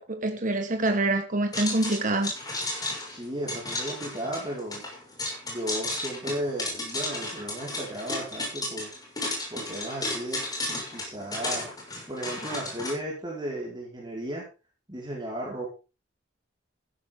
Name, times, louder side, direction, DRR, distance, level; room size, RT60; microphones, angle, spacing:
voice 1, 0.0-2.3, right 2 dB, 45° right, 6 dB, 1.5 m, -26 dB
sound 1, 1.5-12.9, left 2 dB, 20° left, 6.1 m, -34 dB
voice 2, 3.1-4.8 5.4-8.9 9.5-11.7 12.1-14.5 14.9-15.7, right 1 dB, 25° right, -4 dB, 5.1 m, -35 dB
15.0 x 11.5 x 3.8 m, 0.32 s
head